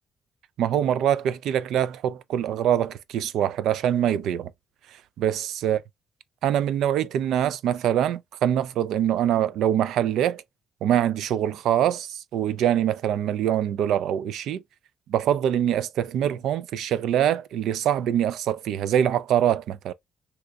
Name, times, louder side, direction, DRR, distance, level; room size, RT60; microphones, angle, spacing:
voice 1, 0.6-4.5 5.2-5.8 6.4-10.4 10.8-14.6 15.1-19.9, right 10 dB, 75° right, 0.3 m, -24 dB
3.4 x 2.9 x 2.4 m
cardioid pair, 155°, 0 cm